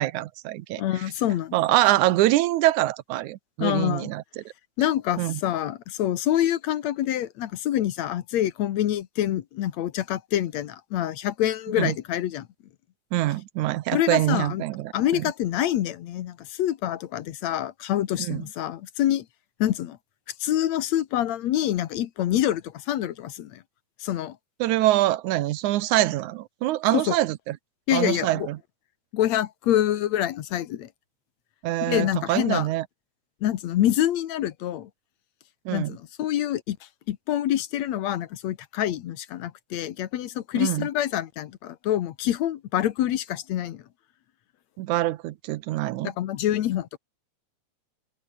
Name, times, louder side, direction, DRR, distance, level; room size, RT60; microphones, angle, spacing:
voice 1, 0.0-1.0 1.5-4.4 5.2-5.4 11.8-12.0 13.1-15.3 18.2-18.4 24.6-27.6 27.9-28.6 31.6-32.9 35.7-36.0 40.5-40.9 44.8-46.1, right 15 dB, 85° right, 2.3 m, -24 dB
voice 2, 0.8-1.6 3.6-4.1 4.8-12.5 13.9-14.6 14.9-19.3 19.6-20.0 20.4-23.6 24.0-24.4 26.9-27.1 27.9-28.5 29.1-30.9 31.9-32.7 33.4-34.9 35.7-36.8 37.1-43.8 46.0-47.0, left 12 dB, 70° left, 2.3 m, -26 dB
omnidirectional pair, 3.4 m